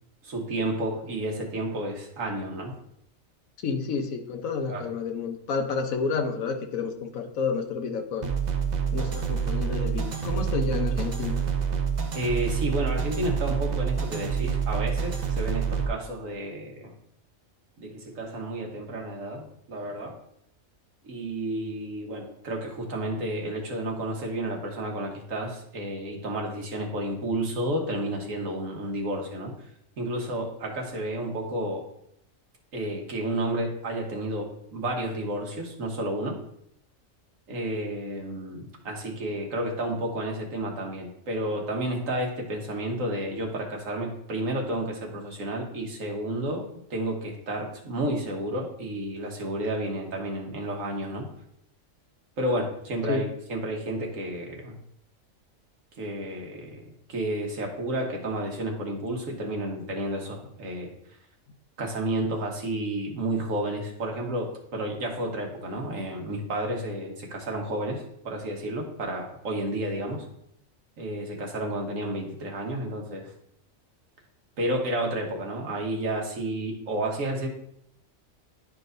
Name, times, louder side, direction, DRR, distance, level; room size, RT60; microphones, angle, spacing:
voice 1, 0.2-2.7 4.7-4.9 12.1-16.9 17.8-20.2 21.0-29.5 30.0-31.9 32.7-36.3 37.5-51.3 52.4-54.7 56.0-56.8 57.1-60.9 61.8-70.2 71.0-73.3 74.6-77.5, right 1 dB, 75° right, 1 dB, 1.6 m, -31 dB
voice 2, 3.6-8.3 8.9-11.4 53.1-53.3, left 5 dB, 85° left, 6 dB, 1.2 m, -30 dB
sound 1, 8.2-15.9, right 6 dB, 45° right, 0.6 m, -27 dB
10.5 x 4.6 x 2.6 m, 0.73 s
omnidirectional pair, 1.4 m